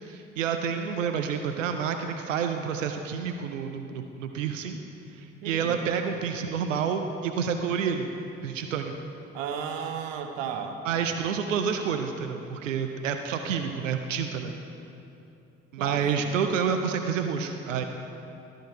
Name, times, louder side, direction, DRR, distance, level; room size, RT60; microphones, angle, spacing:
voice 1, 0.0-4.8 5.2-8.1 8.4-8.9 10.8-14.5 15.7-17.8, right 7 dB, 80° right, 6 dB, 0.5 m, -29 dB
voice 2, 5.4-5.8 9.3-10.8 15.8-16.3, right 7 dB, 65° right, 5 dB, 0.9 m, -34 dB
12.5 x 6.4 x 4.8 m, 2.7 s
figure-of-eight pair, 45°, 38 cm